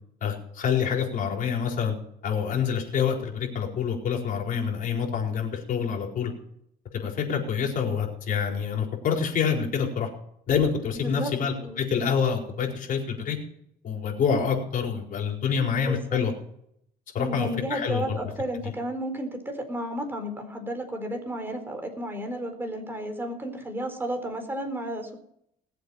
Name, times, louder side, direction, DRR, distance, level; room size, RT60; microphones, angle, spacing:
voice 1, 0.2-1.9 2.2-6.3 6.9-10.1 10.5-13.4 13.8-16.3 17.1-18.2, left 7 dB, 55° left, 0 dB, 4.6 m, -27 dB
voice 2, 11.0-11.3 11.6-11.8 15.7-16.2 17.2-25.2, right 1 dB, 15° right, 4 dB, 4.1 m, -32 dB
20.5 x 8.0 x 5.6 m, 0.72 s
cardioid pair, 110°, 17 cm